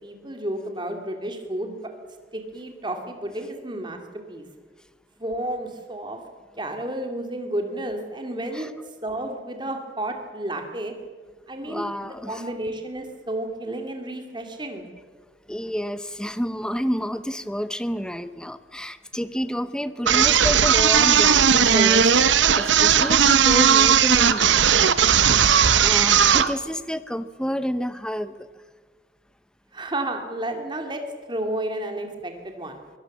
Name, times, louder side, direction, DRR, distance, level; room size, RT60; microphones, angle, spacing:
voice 1, 0.0-1.8 2.3-4.0 4.3-4.5 5.2-6.2 6.6-8.7 9.0-10.9 11.5-14.8 29.7-31.0 31.3-32.8, right 1 dB, 25° right, 4 dB, 2.5 m, -31 dB
voice 2, 11.6-12.4 15.5-25.2 25.8-28.5, equal, 5° left, 13 dB, 0.7 m, -29 dB
sound 1, 20.1-26.5, right 8 dB, 90° right, 0.9 m, -17 dB
23.0 x 17.0 x 7.3 m, 1.5 s
head